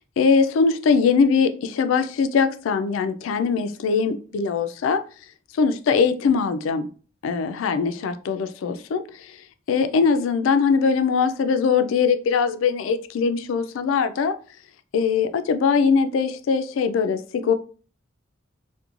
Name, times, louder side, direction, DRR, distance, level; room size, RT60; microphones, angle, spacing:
voice 1, 0.2-5.0 5.6-6.9 7.2-9.0 9.7-14.3 14.9-17.5, left 5 dB, 85° left, 10 dB, 0.3 m, -21 dB
2.9 x 2.2 x 2.4 m, 0.38 s
head